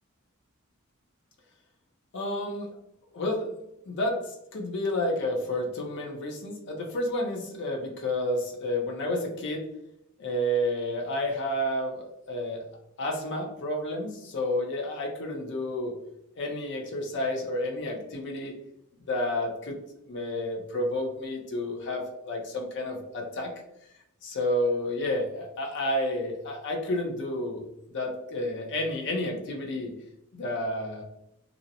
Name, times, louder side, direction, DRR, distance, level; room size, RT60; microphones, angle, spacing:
voice 1, 2.1-2.7 3.1-3.5 3.9-9.7 10.2-12.7 13.0-15.9 16.4-18.5 19.1-19.8 20.1-23.5 24.2-29.9 30.3-31.0, left 1 dB, 55° left, 1 dB, 0.5 m, -30 dB
2.5 x 2.0 x 2.7 m, 0.84 s
head